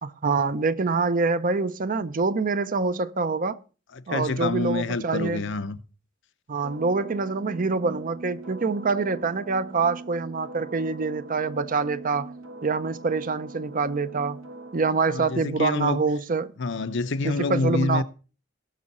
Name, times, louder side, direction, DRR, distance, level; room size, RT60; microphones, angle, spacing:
voice 1, 0.0-3.6 4.1-5.4 6.5-12.3 12.6-14.4 14.7-16.5 17.2-18.0, right 4 dB, 45° right, 0.6 m, -25 dB
voice 2, 3.9-5.8 15.1-16.0 16.6-18.0, left 3 dB, 60° left, 0.7 m, -27 dB
sound 1, 6.6-14.9, right 2 dB, 75° right, 1.1 m, -42 dB
18.0 x 6.3 x 4.2 m
head